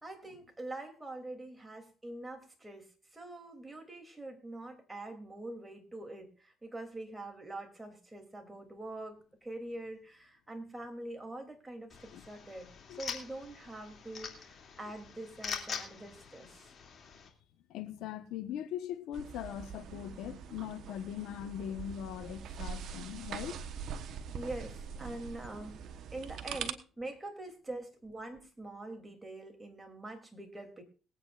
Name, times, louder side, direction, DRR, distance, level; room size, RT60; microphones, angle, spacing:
voice 1, 0.0-2.9 3.1-16.7 24.3-25.8 26.1-30.8, right 2 dB, 15° right, 3.0 m, -44 dB
sound 1, 11.9-17.3, left 6 dB, 45° left, 2.7 m, -44 dB
voice 2, 17.7-23.6, left 10 dB, 80° left, 1.2 m, -40 dB
sound 2, 19.1-26.7, right 7 dB, 65° right, 1.1 m, -43 dB
22.0 x 8.8 x 2.5 m
cardioid pair, 90°, 0 cm